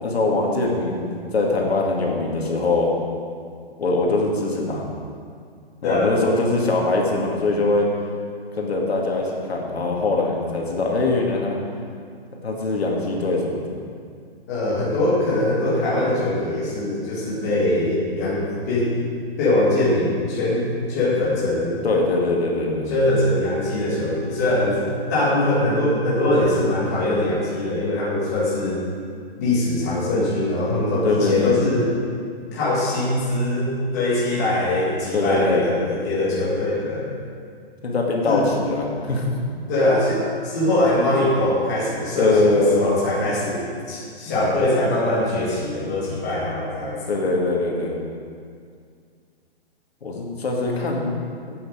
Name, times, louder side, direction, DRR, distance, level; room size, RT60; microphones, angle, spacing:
voice 1, 0.0-2.9 3.8-4.9 5.8-7.9 8.6-11.6 12.4-13.6 21.8-23.0 31.0-31.5 35.1-35.7 37.8-39.4 42.2-42.9 47.1-48.0 50.0-51.1, left 2 dB, 75° left, -1 dB, 2.3 m, -22 dB
voice 2, 5.8-6.1 14.5-18.9 19.4-21.7 22.9-28.8 29.4-31.9 32.5-37.1 38.2-38.4 39.7-47.2, left 1 dB, 15° left, -8 dB, 1.7 m, -22 dB
11.5 x 8.6 x 5.0 m, 2.2 s
hypercardioid pair, 180°, 31 cm